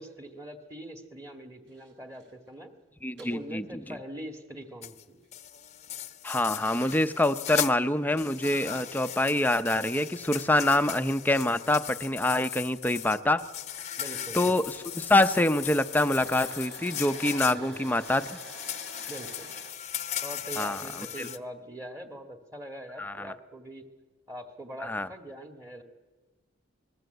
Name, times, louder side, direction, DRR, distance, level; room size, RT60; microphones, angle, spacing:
voice 1, 0.0-2.7 3.2-5.2 14.0-14.6 17.4-17.9 19.1-19.5 20.2-23.8 24.3-25.8, right 1 dB, 15° right, 6 dB, 2.0 m, -42 dB
sound 1, 1.7-2.5 3.2-3.3 4.5-4.7 5.2-5.3 5.9-6.6 7.1-7.8 9.0-9.1 9.8-9.9 10.2-11.3 12.4-12.6 13.1-13.2 13.6-19.7, right 3 dB, 60° right, 5.6 m, -49 dB
voice 2, 3.0-3.6 6.2-13.4 14.3-18.4 20.6-20.8 21.2-21.3 23.0-23.3 24.8-25.1, left 1 dB, 10° left, 10 dB, 0.8 m, -26 dB
sound 2, 4.8-5.0 5.3-7.7 8.1-21.4, left 10 dB, 35° left, 0.9 m, -38 dB
28.5 x 20.5 x 8.0 m, 1.3 s
head